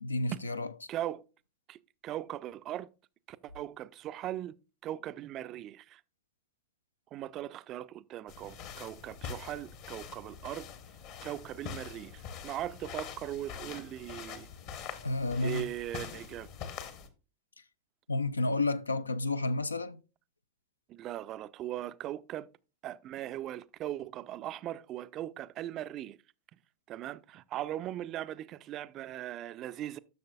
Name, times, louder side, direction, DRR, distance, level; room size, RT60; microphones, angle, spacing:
voice 1, 0.0-0.7 15.0-15.7 18.1-20.0, left 2 dB, 80° left, 0.4 m, -31 dB
voice 2, 0.9-1.2 1.7-2.9 3.3-4.5 4.8-6.0 7.1-10.7 11.2-14.5 15.4-16.5 20.9-22.5 22.8-26.2 26.9-30.0, right 13 dB, 35° right, 0.4 m, -39 dB
sound 1, 8.3-17.1, left 7 dB, 45° left, 1.1 m, -44 dB
10.5 x 6.4 x 2.3 m
figure-of-eight pair, 90°, 0 cm